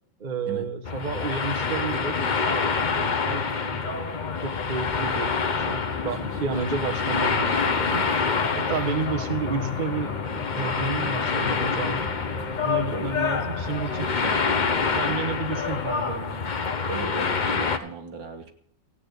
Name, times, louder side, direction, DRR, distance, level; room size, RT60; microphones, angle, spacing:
voice 1, 0.2-3.9 4.4-5.3 5.6-8.1 8.5-12.1 12.6-14.4 15.0-16.4, right 4 dB, 30° right, 7 dB, 1.1 m, -31 dB
sound 1, 0.9-17.8, left 5 dB, 40° left, 0.7 m, -27 dB
sound 2, 5.6-15.2, left 7 dB, 90° left, 2.2 m, -38 dB
voice 2, 8.1-9.0 12.9-13.1 15.0-15.4 16.9-18.5, right 3 dB, 80° right, 5 dB, 2.4 m, -37 dB
15.5 x 8.7 x 6.5 m, 0.66 s
omnidirectional pair, 2.0 m